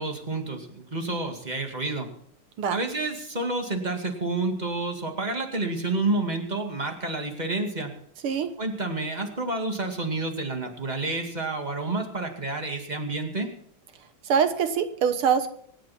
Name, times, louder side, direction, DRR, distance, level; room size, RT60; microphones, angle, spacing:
voice 1, 0.0-2.1 2.7-7.9 8.6-13.5, right 2 dB, 20° right, 3 dB, 2.2 m, -29 dB
voice 2, 14.3-15.5, right 7 dB, 90° right, 9 dB, 2.1 m, -23 dB
25.5 x 9.0 x 4.4 m, 0.64 s
omnidirectional pair, 2.3 m